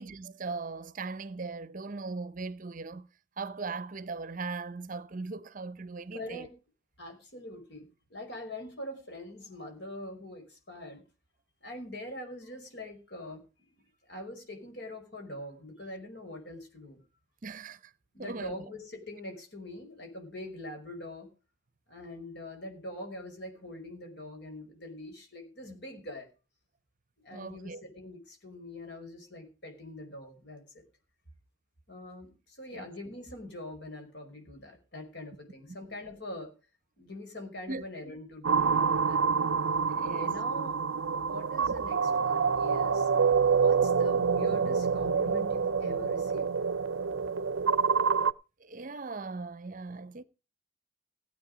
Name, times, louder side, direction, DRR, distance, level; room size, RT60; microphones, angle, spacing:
voice 1, 0.0-3.1 3.4-6.5 17.4-17.9 18.2-18.7 27.3-27.8 32.7-32.9 37.7-37.9 39.9-40.4 48.6-50.2, right 4 dB, 40° right, 0.7 m, -39 dB
voice 2, 6.1-6.5 7.0-11.0 11.6-13.4 14.1-17.0 18.1-21.3 21.9-26.3 27.2-30.8 31.9-36.5 37.0-39.4 40.0-40.8 41.3-43.1 43.6-46.5, left 1 dB, 55° left, 5.5 m, -43 dB
sound 1, 38.4-48.3, right 5 dB, 80° right, 0.6 m, -27 dB
16.5 x 8.8 x 5.0 m
head